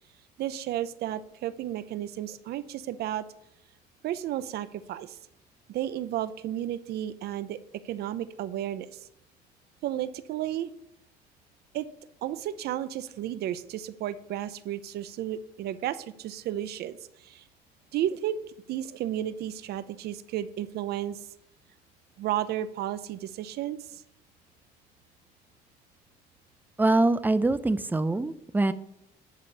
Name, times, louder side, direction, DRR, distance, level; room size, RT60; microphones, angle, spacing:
voice 1, 0.4-3.3 4.0-5.2 5.7-9.1 9.8-10.7 11.7-11.9 12.2-17.4 17.9-18.4 18.7-21.2 22.2-24.0, right 12 dB, 70° right, 14 dB, 0.7 m, -33 dB
voice 2, 26.8-28.7, right 2 dB, 10° right, 13 dB, 0.6 m, -24 dB
11.0 x 5.1 x 6.9 m, 0.76 s
cardioid pair, 110°, 17 cm